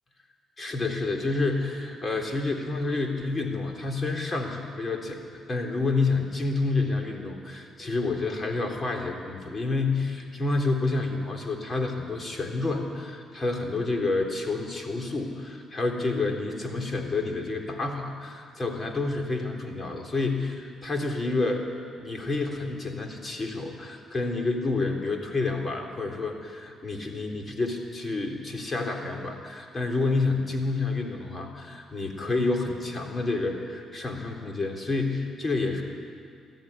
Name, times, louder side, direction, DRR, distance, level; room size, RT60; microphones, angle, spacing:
voice 1, 0.6-21.7 22.0-35.8, left 3 dB, 35° left, 2 dB, 3.5 m, -29 dB
20.5 x 13.5 x 10.0 m, 2.2 s
cardioid pair, 90°, 0 cm